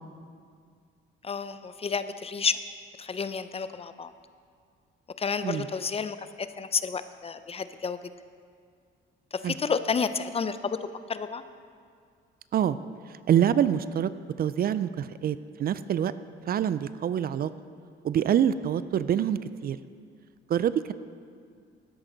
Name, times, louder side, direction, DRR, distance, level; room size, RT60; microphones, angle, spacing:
voice 1, 1.2-2.6 3.0-4.1 5.2-8.0 9.3-11.4, left 5 dB, 30° left, 12 dB, 0.5 m, -30 dB
voice 2, 13.3-14.1 14.4-16.1 16.5-17.5 18.0-19.8 20.5-20.9, right 9 dB, 50° right, 15 dB, 0.4 m, -25 dB
12.5 x 10.0 x 3.9 m, 2.2 s
cardioid pair, 90°, 20 cm